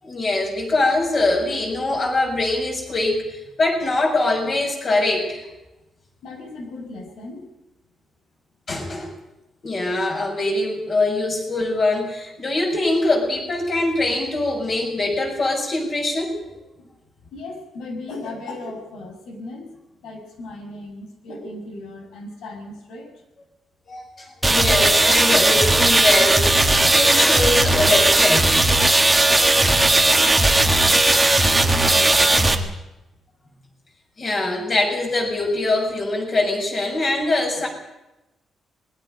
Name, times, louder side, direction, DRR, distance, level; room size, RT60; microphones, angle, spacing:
voice 1, 0.0-5.4 8.7-9.1 9.6-16.3 23.9-28.6 34.2-37.7, left 2 dB, 30° left, 1 dB, 5.9 m, -23 dB
voice 2, 6.2-7.5 16.8-16.9 17.3-19.7 20.0-23.1 30.1-32.7, left 2 dB, 85° left, 3 dB, 6.5 m, -36 dB
sound 1, 24.4-32.5, right 2 dB, 10° right, 1.5 m, -17 dB
26.0 x 21.0 x 5.4 m, 0.97 s
wide cardioid pair, 180°, 0 cm